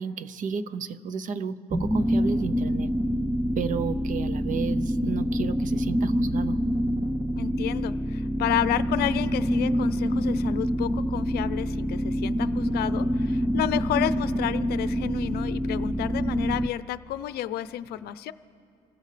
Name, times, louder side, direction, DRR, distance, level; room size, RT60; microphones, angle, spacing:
voice 1, 0.0-2.9 3.6-6.6, right 6 dB, 50° right, 16 dB, 0.6 m, -32 dB
sound 1, 1.7-16.7, equal, 5° right, 0.3 m, -26 dB
voice 2, 7.4-18.3, left 12 dB, 70° left, 15 dB, 0.5 m, -31 dB
28.0 x 15.5 x 3.3 m, 2.5 s
cardioid pair, 110°, 17 cm